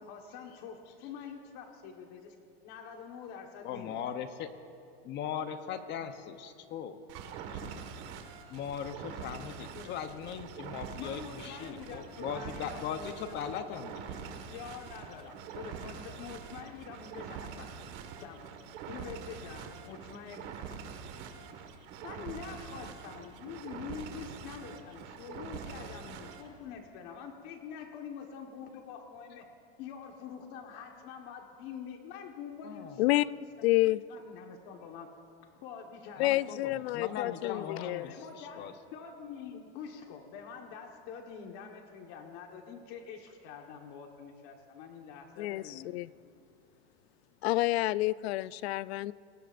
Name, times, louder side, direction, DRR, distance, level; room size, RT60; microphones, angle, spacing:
voice 1, 0.0-2.4 2.6-3.9 9.7-9.9 11.0-13.7 14.5-17.7 18.2-18.5 18.9-20.8 22.0-29.5 29.8-33.5 33.8-35.2 35.6-36.4 37.5-38.6 38.9-46.0, left 7 dB, 50° left, 3 dB, 1.5 m, -46 dB
voice 2, 3.6-4.5 5.0-7.0 7.5-7.6 8.5-14.3 32.6-33.0 36.2-38.7, left 8 dB, 35° left, 9 dB, 0.8 m, -39 dB
sound 1, 7.1-26.5, right 7 dB, 50° right, 1.8 m, -44 dB
voice 3, 33.6-34.0 36.2-38.1 45.4-46.1 47.4-49.1, left 18 dB, 70° left, 19 dB, 0.5 m, -29 dB
27.5 x 20.5 x 2.6 m, 2.5 s
supercardioid pair, 150°, 32 cm